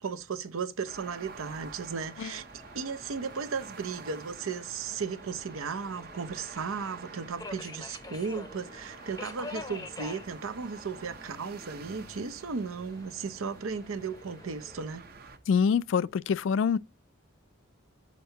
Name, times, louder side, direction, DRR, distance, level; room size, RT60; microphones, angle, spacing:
voice 1, 0.0-2.4 2.7-15.0, right 5 dB, 85° right, 0.7 m, -35 dB
sound 1, 0.9-15.4, right 4 dB, 45° right, 0.7 m, -48 dB
Subway metro underground, 2.5-14.8, left 2 dB, 15° left, 0.6 m, -48 dB
voice 2, 15.5-16.8, left 6 dB, 65° left, 0.3 m, -25 dB
7.3 x 4.5 x 2.8 m
head